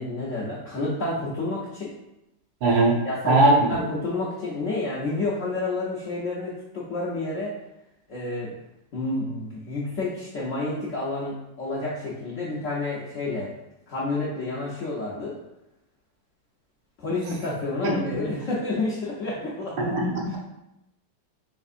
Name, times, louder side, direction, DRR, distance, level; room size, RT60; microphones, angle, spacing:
voice 1, 0.0-1.9 3.0-7.5 8.1-8.6 8.9-13.5 13.9-15.4 17.0-19.9 20.3-20.4, left 2 dB, 70° left, -6 dB, 0.7 m, -29 dB
voice 2, 2.6-3.0 3.3-3.7 17.8-18.0 19.8-20.4, right 2 dB, 75° right, -1 dB, 1.5 m, -20 dB
4.2 x 3.5 x 2.4 m, 0.90 s
omnidirectional pair, 2.1 m